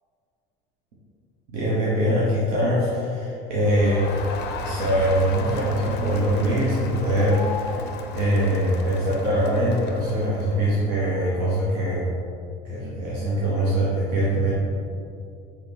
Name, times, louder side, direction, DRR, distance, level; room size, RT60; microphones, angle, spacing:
voice 1, 1.5-4.1 4.6-7.8 8.1-12.2 12.7-14.5, equal, 80° right, -7 dB, 0.9 m, -23 dB
sound 1, 3.5-11.1, right 4 dB, 65° right, 0.4 m, -38 dB
Crowd, 3.6-10.7, left 5 dB, 60° left, 0.5 m, -36 dB
4.9 x 3.0 x 3.4 m, 2.4 s
supercardioid pair, 85°, 20 cm